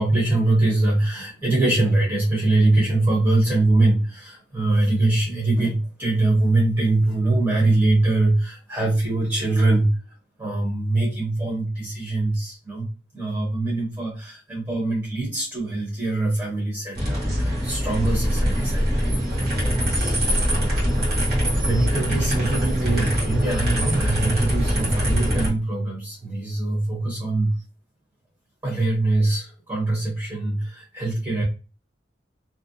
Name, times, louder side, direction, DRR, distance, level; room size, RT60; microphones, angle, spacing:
voice 1, 0.0-9.9 10.4-12.9 13.1-20.5 21.5-27.5 28.6-31.4, right 2 dB, 15° right, -3 dB, 0.9 m, -23 dB
sound 1, 17.0-25.5, equal, 55° right, 1.2 m, -23 dB
2.6 x 2.0 x 2.6 m, 0.32 s
head